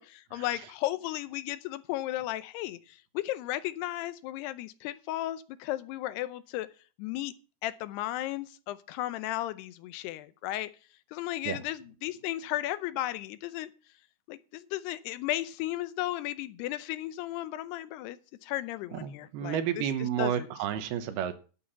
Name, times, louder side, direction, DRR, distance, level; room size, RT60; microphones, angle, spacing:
voice 1, 0.0-6.7 7.0-7.3 7.6-10.7 11.1-13.7 14.3-20.5, left 15 dB, 85° left, 2.8 m, -35 dB
voice 2, 18.9-21.4, right 9 dB, 80° right, 3.0 m, -31 dB
11.0 x 8.6 x 5.7 m
omnidirectional pair, 4.7 m